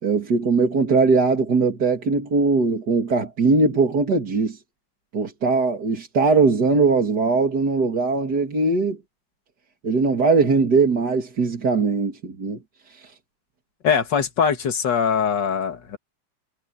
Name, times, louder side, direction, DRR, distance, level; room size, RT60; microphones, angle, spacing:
voice 1, 0.0-4.6 5.1-9.0 9.8-12.6 12.9-13.1, right 4 dB, 35° right, 2.5 m, -20 dB
voice 2, 13.8-16.0, left 7 dB, 40° left, 1.9 m, -22 dB
omnidirectional pair, 3.8 m